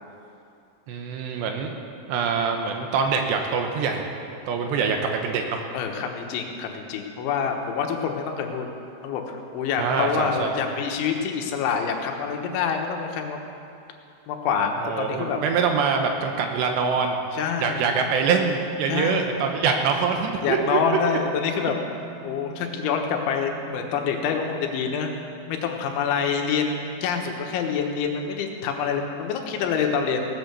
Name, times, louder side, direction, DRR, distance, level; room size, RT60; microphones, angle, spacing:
voice 1, 0.9-1.7 2.1-4.1 4.5-5.7 9.8-10.6 14.8-17.2 17.6-20.8, right 5 dB, 75° right, 3 dB, 3.0 m, -24 dB
voice 2, 5.7-8.7 9.0-13.4 14.3-15.4 17.3-17.9 18.9-19.3 20.4-21.8 22.2-25.1 25.5-30.2, left 6 dB, 85° left, 3 dB, 3.5 m, -26 dB
sound 1, 17.9-26.9, right 6 dB, 10° right, 3.6 m, -44 dB
17.5 x 8.6 x 6.9 m, 2.6 s
omnidirectional pair, 5.3 m